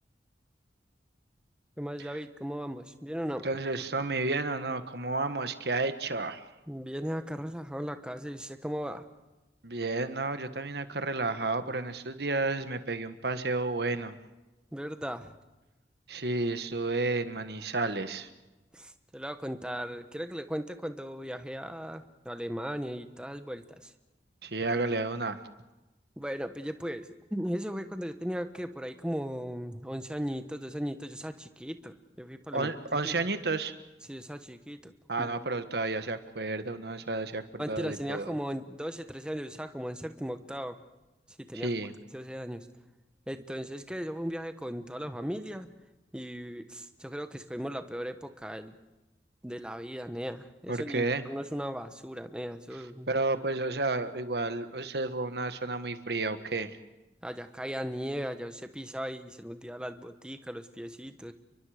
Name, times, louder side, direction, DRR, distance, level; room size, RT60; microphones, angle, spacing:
voice 1, 1.8-3.5 6.7-9.0 14.7-15.3 18.7-23.9 26.2-32.7 33.0-33.1 34.0-34.9 35.2-35.3 37.6-40.8 41.5-41.7 42.1-42.7 43.3-45.7 46.1-48.7 49.4-53.1 57.2-61.3, equal, 5° right, 8 dB, 1.1 m, -37 dB
voice 2, 3.4-6.4 9.6-14.2 16.1-18.3 24.4-25.4 32.5-33.7 35.1-38.3 41.5-41.9 50.7-51.2 53.1-56.8, right 3 dB, 70° right, 10 dB, 1.5 m, -31 dB
29.5 x 23.5 x 5.0 m, 1.0 s
head